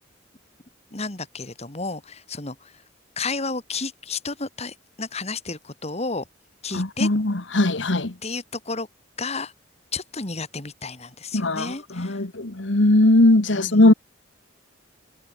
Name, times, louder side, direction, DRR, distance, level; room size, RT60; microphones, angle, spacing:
voice 1, 0.9-2.8 3.2-6.2 6.6-7.1 8.2-8.9 9.2-9.5 9.9-12.2 13.5-13.8, left 3 dB, 35° left, 2.6 m, -32 dB
voice 2, 6.7-8.1 11.3-13.9, left 1 dB, 75° left, 1.7 m, -19 dB
head